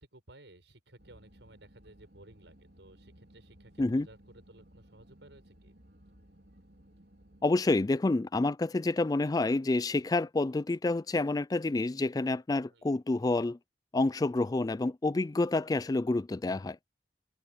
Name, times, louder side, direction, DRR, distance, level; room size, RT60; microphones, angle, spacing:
voice 1, 0.0-5.7 12.7-12.9, right 1 dB, 90° right, 5.6 m, -56 dB
sound 1, 1.0-7.4, right 1 dB, 65° right, 3.4 m, -58 dB
voice 2, 7.4-13.6 13.9-16.8, left 2 dB, 20° left, 0.3 m, -28 dB
head